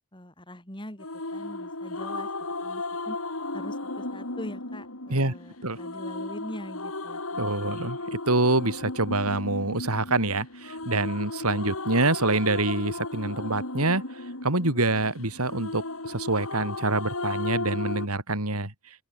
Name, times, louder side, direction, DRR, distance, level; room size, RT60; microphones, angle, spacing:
voice 1, 0.1-1.1 1.3-2.3 2.6-3.2 3.5-7.4, equal, 20° left, 6.5 m, -42 dB
sound 1, 1.0-18.1, left 2 dB, 75° left, 4.5 m, -35 dB
voice 2, 7.4-14.0 14.4-18.7, right 2 dB, 85° right, 4.6 m, -26 dB
open air
head